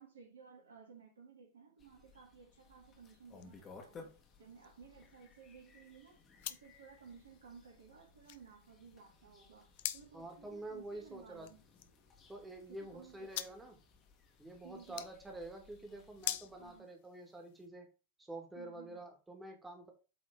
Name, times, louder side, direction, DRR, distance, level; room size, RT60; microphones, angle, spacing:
voice 1, 0.0-4.1 4.4-6.2 6.5-11.6 12.7-13.3 14.6-15.0 16.6-16.9 18.5-19.0, right 6 dB, 70° right, 1.5 m, -57 dB
sound 1, 1.8-16.8, left 4 dB, 25° left, 1.5 m, -61 dB
sound 2, 2.5-17.7, left 14 dB, 50° left, 0.5 m, -49 dB
voice 2, 10.1-11.5 12.3-13.8 14.4-17.9 18.2-19.9, right 2 dB, 10° right, 1.7 m, -48 dB
8.3 x 3.6 x 3.6 m
figure-of-eight pair, 90°, 0 cm